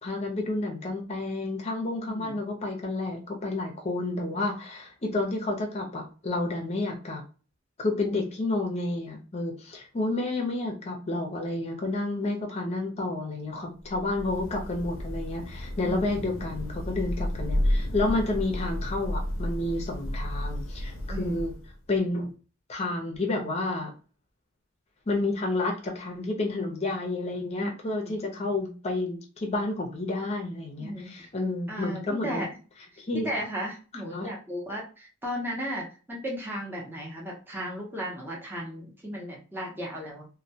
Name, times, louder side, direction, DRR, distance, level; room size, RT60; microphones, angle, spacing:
voice 1, 0.0-7.2 7.8-21.5 21.9-22.3 22.7-23.9 25.1-32.4 33.0-33.3 34.1-34.3, left 2 dB, 35° left, 1 dB, 0.6 m, -30 dB
voice 2, 2.0-2.4 15.8-16.2 21.1-21.4 27.6-27.7 28.0-28.5 30.8-31.3 31.7-32.5 33.2-40.3, equal, 10° right, -4 dB, 0.6 m, -35 dB
Thunder / Rain, 13.8-21.9, left 1 dB, 75° left, 0.6 m, -32 dB
2.2 x 2.1 x 2.7 m, 0.36 s
head